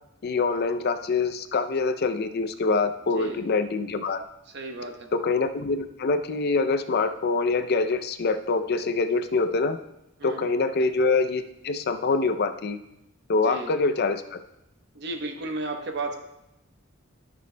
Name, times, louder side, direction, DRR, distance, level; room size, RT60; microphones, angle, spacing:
voice 1, 0.2-4.2 5.1-9.8 10.2-12.8 13.3-14.2, left 4 dB, 50° left, 10 dB, 0.5 m, -25 dB
voice 2, 3.1-3.5 4.5-5.1 10.2-10.5 13.4-13.7 14.9-16.1, right 3 dB, 60° right, 4 dB, 0.9 m, -34 dB
13.5 x 6.2 x 2.2 m, 0.87 s
head